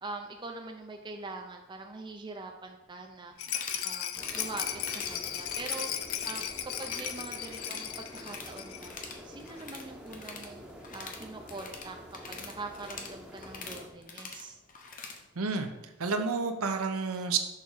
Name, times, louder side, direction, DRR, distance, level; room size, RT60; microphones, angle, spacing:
voice 1, 0.0-3.3 3.8-5.9 6.2-8.9 9.2-10.7 10.9-12.0 12.3-14.6, right 3 dB, 20° right, 3 dB, 0.5 m, -43 dB
Rattle, 3.4-9.1 9.3-9.4 9.7-9.8, left 10 dB, 70° left, 0.5 m, -36 dB
sound 1, 3.4-3.9 4.2-4.5 4.8-5.2 5.5-6.5 6.7-7.2 7.4-8.5 8.8-15.2, left 4 dB, 40° left, 0.8 m, -44 dB
sound 2, 4.2-13.9, equal, 5° right, 0.8 m, -48 dB
voice 2, 15.4-15.7 16.0-17.4, right 4 dB, 80° right, 6 dB, 0.8 m, -30 dB
6.6 x 3.6 x 5.5 m, 0.99 s
head